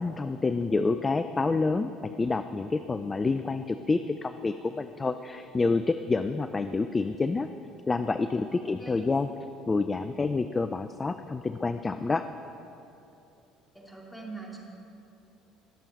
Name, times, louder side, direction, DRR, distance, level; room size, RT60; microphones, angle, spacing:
voice 1, 0.0-7.5 7.9-9.3 9.7-12.2, left 3 dB, 25° left, 10 dB, 0.4 m, -28 dB
voice 2, 8.5-9.0 13.7-14.6, right 3 dB, 10° left, -3 dB, 2.7 m, -43 dB
20.0 x 7.2 x 4.2 m, 2.9 s
figure-of-eight pair, 55°, 0 cm